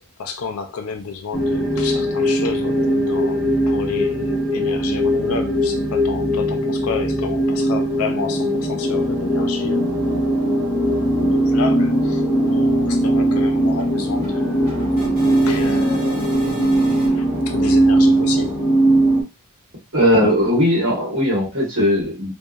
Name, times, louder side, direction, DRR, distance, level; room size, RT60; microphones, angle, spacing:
voice 1, 0.0-9.8 10.9-14.8 15.3-18.6, left 5 dB, 70° left, 0.4 m, -31 dB
sound 1, 1.3-19.2, right 1 dB, 5° right, 0.7 m, -19 dB
sound 2, 10.2-10.3 10.7-10.9 11.1-17.1, equal, 40° right, 1.4 m, -37 dB
voice 2, 19.9-22.4, equal, 60° right, 1.3 m, -18 dB
2.7 x 2.1 x 2.4 m
head